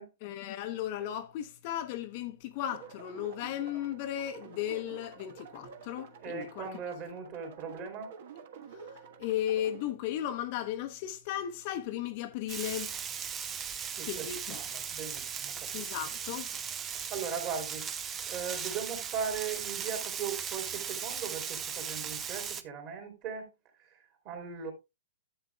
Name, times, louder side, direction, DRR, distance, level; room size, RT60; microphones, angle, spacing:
voice 1, 0.2-6.7 8.8-8.9 9.2-12.9 14.1-14.6 15.7-16.5, left 11 dB, 40° left, 0.8 m, -35 dB
sound 1, 2.6-9.9, right 6 dB, 55° right, 1.2 m, -49 dB
voice 2, 6.2-8.1 14.0-15.9 17.1-17.9 18.3-23.5 23.9-24.0 24.2-24.7, right 6 dB, 35° right, 3.1 m, -39 dB
Frying (food), 12.5-22.6, right 7 dB, 20° right, 0.6 m, -37 dB
11.0 x 7.9 x 2.3 m
hypercardioid pair, 145°, 0 cm